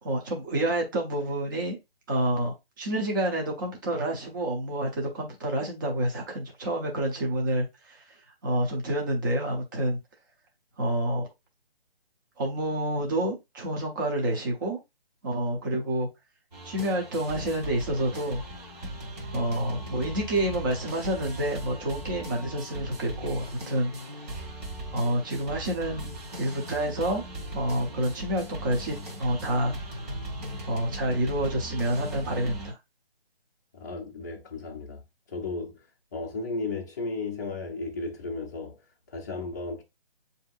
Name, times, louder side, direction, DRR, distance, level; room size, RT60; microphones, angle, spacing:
voice 1, 0.0-1.8 2.1-10.0 10.8-11.3 12.4-14.8 15.2-16.1 16.6-18.4 19.3-23.9 24.2-24.4 24.9-26.1 26.4-27.2 27.5-29.7 30.6-32.8, right 1 dB, 20° right, 0.7 m, -28 dB
sound 1, 16.5-32.7, right 1 dB, 45° right, 1.2 m, -38 dB
voice 2, 33.7-35.0 35.3-35.8 36.1-38.8 39.1-39.8, left 3 dB, 20° left, 0.6 m, -34 dB
7.2 x 2.8 x 2.3 m
figure-of-eight pair, 145°, 30 cm